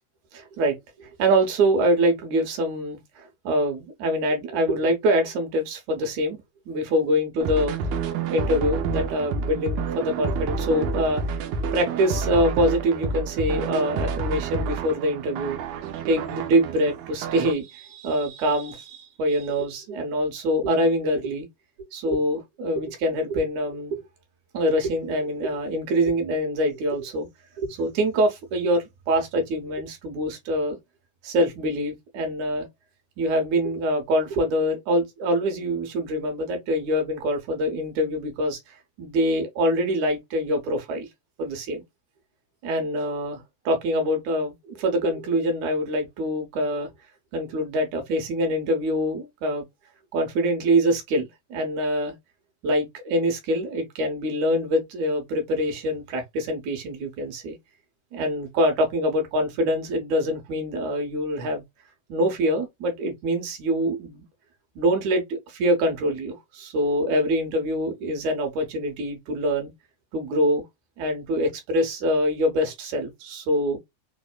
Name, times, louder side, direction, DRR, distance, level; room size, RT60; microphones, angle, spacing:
voice 1, 0.3-6.4 6.7-7.8 8.3-11.4 11.7-15.6 16.1-21.5 21.9-24.0 24.5-27.3 27.6-30.8 31.2-32.7 33.2-38.6 39.0-41.1 41.4-41.8 42.6-46.9 47.3-49.6 50.1-52.1 52.6-57.6 58.1-61.6 62.1-64.2 64.8-69.7 70.1-70.6 71.0-73.8, equal, 65° right, 2.3 m, -25 dB
sound 1, 7.4-17.5, right 4 dB, 85° right, 1.5 m, -29 dB
5.1 x 2.0 x 2.3 m
omnidirectional pair, 3.7 m